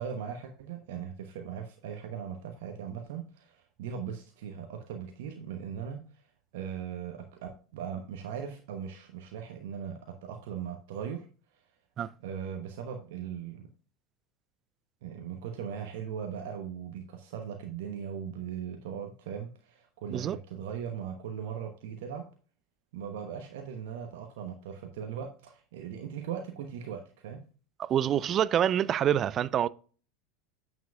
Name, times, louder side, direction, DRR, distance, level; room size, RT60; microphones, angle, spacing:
voice 1, 0.0-6.2 6.5-11.3 11.5-11.6 12.2-13.7 15.0-22.2 22.9-27.4, right 8 dB, 65° right, 1.0 m, -39 dB
voice 2, 27.8-29.7, right 10 dB, 35° right, 0.4 m, -26 dB
9.1 x 7.1 x 2.4 m
figure-of-eight pair, 80°, 0 cm